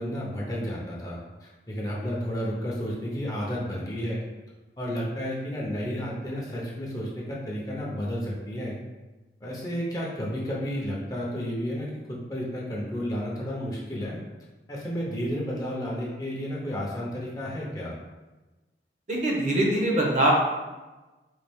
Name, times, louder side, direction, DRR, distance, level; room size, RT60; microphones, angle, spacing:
voice 1, 0.0-4.2 4.8-8.8 9.4-14.2 14.7-17.9, equal, 20° left, -4 dB, 0.6 m, -32 dB
voice 2, 19.1-20.3, right 1 dB, 45° right, -2 dB, 0.7 m, -23 dB
4.1 x 2.4 x 3.4 m, 1.1 s
head